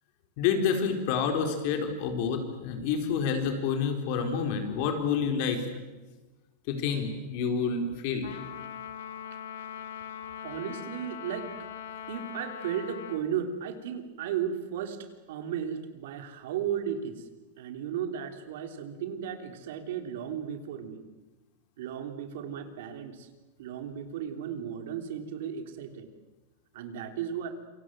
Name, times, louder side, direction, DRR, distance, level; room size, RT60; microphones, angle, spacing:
voice 1, 0.4-5.6 6.7-8.3, left 6 dB, 45° left, 6 dB, 4.2 m, -28 dB
Trumpet, 8.2-13.2, left 9 dB, 85° left, 2.4 m, -41 dB
voice 2, 10.4-11.5 12.1-15.0 15.3-17.3 17.6-21.0 21.8-23.3 23.6-26.1 26.7-27.5, right 8 dB, 65° right, 7 dB, 3.4 m, -35 dB
27.5 x 25.5 x 7.8 m, 1.2 s
supercardioid pair, 170°, 0 cm